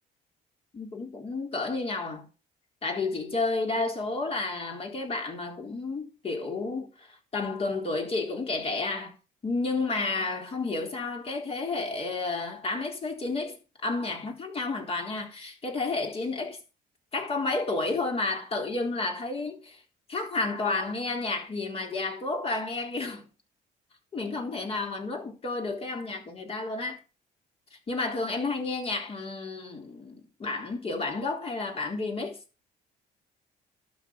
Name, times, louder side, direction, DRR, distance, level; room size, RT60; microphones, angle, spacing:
voice 1, 0.7-2.3 2.8-9.2 9.4-16.6 17.1-19.8 20.1-23.2 24.1-27.0 27.9-32.4, left 3 dB, 35° left, 3.9 m, -31 dB
11.5 x 6.9 x 6.1 m
cardioid pair, 110°, 17 cm